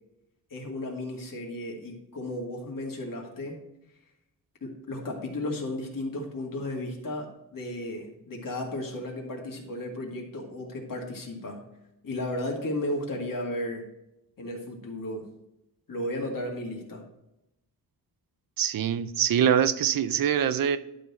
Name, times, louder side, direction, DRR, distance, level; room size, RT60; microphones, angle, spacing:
voice 1, 0.5-3.6 4.6-7.3 7.5-11.6 12.0-13.8 14.4-15.3 15.9-17.0, left 1 dB, 65° left, -1 dB, 2.0 m, -34 dB
voice 2, 18.6-20.8, right 9 dB, 70° right, 13 dB, 0.6 m, -24 dB
11.5 x 4.0 x 4.2 m, 0.87 s
wide cardioid pair, 120°, 36 cm